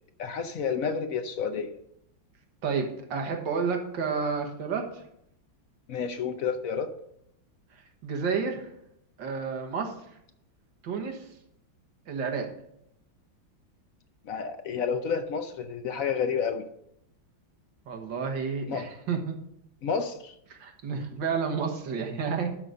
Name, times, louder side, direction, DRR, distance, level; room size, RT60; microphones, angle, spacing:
voice 1, 0.2-1.8 5.9-6.9 14.2-16.7 18.7-18.9 19.8-20.3, left 6 dB, 60° left, 8 dB, 0.9 m, -30 dB
voice 2, 2.6-5.0 8.0-8.7 9.2-9.9 10.8-11.3 12.1-12.5 17.9-19.4 20.5-22.5, right 5 dB, 70° right, 3 dB, 2.1 m, -30 dB
11.5 x 4.1 x 6.5 m, 0.74 s
omnidirectional pair, 2.1 m